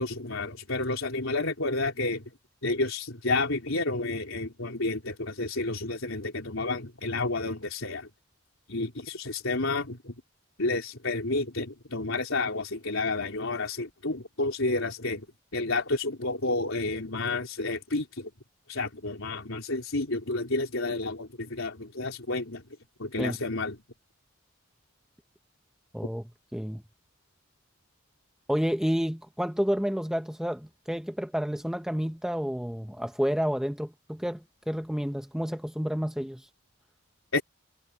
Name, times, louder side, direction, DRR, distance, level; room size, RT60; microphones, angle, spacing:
voice 1, 0.0-2.2 2.6-8.1 8.7-10.1 10.6-15.3 15.5-18.3 18.7-22.6 23.0-23.8 37.3-37.4, left 2 dB, 75° left, 3.8 m, -30 dB
voice 2, 25.9-26.2 26.5-26.8 28.5-36.5, equal, 5° right, 0.6 m, -30 dB
head